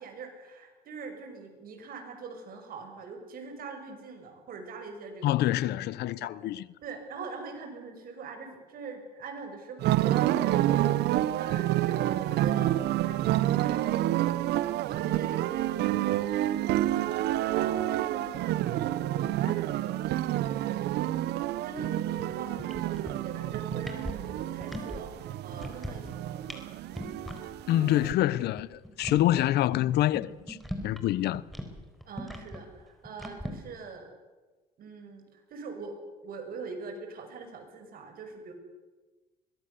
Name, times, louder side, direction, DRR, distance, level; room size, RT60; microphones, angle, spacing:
voice 1, 0.0-5.4 6.2-6.3 6.8-13.8 14.9-16.2 16.9-20.0 20.5-26.5 32.1-34.1 34.8-36.0 36.2-38.5, right 4 dB, 60° right, 6.1 m, -43 dB
voice 2, 5.2-6.7 27.7-30.6 30.8-31.4, left 14 dB, 75° left, 0.8 m, -26 dB
sound 1, 9.8-28.1, right 14 dB, 80° right, 0.9 m, -29 dB
sound 2, 22.2-22.3 22.6-23.3 23.6-25.0 25.3-26.1 26.4-26.6 26.9-27.4 27.7-27.8 28.0-28.1 28.5-31.1 31.3-33.5, equal, ahead, 4.2 m, -39 dB
23.5 x 20.5 x 6.9 m
cardioid pair, 110°, 17 cm